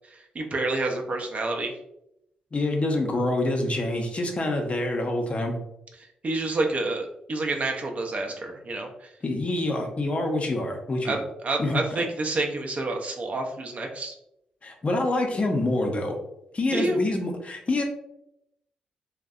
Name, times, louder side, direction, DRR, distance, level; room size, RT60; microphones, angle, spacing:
voice 1, 0.3-1.7 6.2-9.1 11.0-14.2 16.7-17.0, right 2 dB, 45° right, 2 dB, 0.5 m, -28 dB
voice 2, 2.5-5.5 9.2-11.2 11.6-12.0 14.6-16.2 16.5-17.8, left 2 dB, 40° left, 3 dB, 0.5 m, -26 dB
2.5 x 2.0 x 2.4 m, 0.80 s
hypercardioid pair, 40°, 3 cm